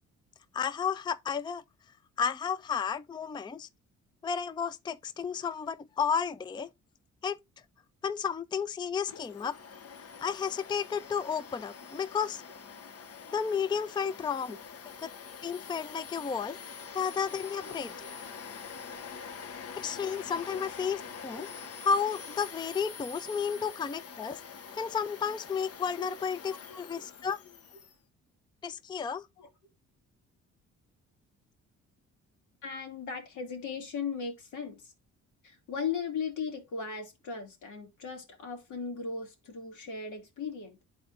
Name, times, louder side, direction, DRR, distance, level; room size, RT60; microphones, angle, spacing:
voice 1, 0.5-1.6 2.2-3.7 4.2-6.7 7.2-7.4 8.0-9.6 10.2-12.4 13.3-14.6 15.0-15.1 15.4-16.6 16.9-17.9 19.8-24.4 24.7-27.4 28.6-29.3, left 6 dB, 15° left, 0.4 m, -32 dB
Domestic sounds home sounds, 9.1-27.9, left 6 dB, 50° left, 0.9 m, -45 dB
voice 2, 17.4-18.1 21.0-21.2 26.0-26.2 26.5-26.8 29.4-29.5 32.6-34.9 35.4-40.8, left 5 dB, 80° left, 2.2 m, -38 dB
11.0 x 4.2 x 2.5 m
cardioid pair, 90°, 30 cm